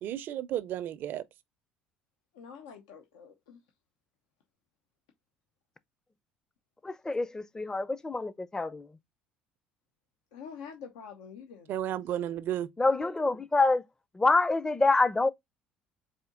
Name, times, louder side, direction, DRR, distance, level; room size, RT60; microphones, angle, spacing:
voice 1, 0.0-1.2 11.7-12.7, right 11 dB, 60° right, 0.5 m, -33 dB
voice 2, 2.3-3.6 10.3-11.7, left 6 dB, 90° left, 0.7 m, -46 dB
voice 3, 6.8-8.9 12.8-13.8 14.2-15.3, left 3 dB, 15° left, 0.5 m, -26 dB
4.3 x 2.7 x 3.7 m
supercardioid pair, 80°, 4 cm